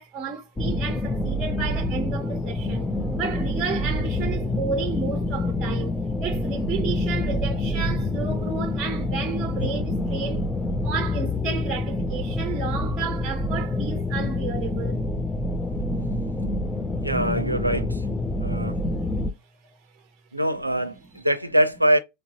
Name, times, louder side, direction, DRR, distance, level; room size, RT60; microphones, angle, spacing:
voice 1, 0.0-10.5 10.8-15.0 18.5-18.9, right 6 dB, 25° right, 0.7 m, -32 dB
sound 1, 0.6-19.3, left 2 dB, 10° left, 0.4 m, -27 dB
voice 2, 17.0-18.0 18.4-18.8 20.3-22.0, right 1 dB, 85° right, 0.5 m, -23 dB
3.8 x 3.2 x 2.7 m
figure-of-eight pair, 90°, 0 cm